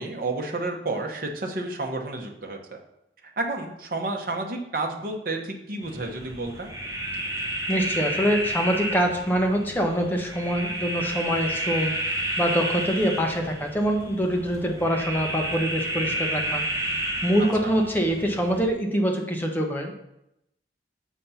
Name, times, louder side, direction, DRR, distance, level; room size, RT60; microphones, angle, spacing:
voice 1, 0.0-2.8 3.4-6.7 17.4-17.7, right 2 dB, 50° right, 2 dB, 1.1 m, -31 dB
sound 1, 5.8-18.7, right 1 dB, 20° right, 1.2 m, -31 dB
voice 2, 7.7-11.9 12.4-16.6 17.2-19.9, equal, 10° left, 1 dB, 0.9 m, -24 dB
7.2 x 4.2 x 5.7 m, 0.83 s
head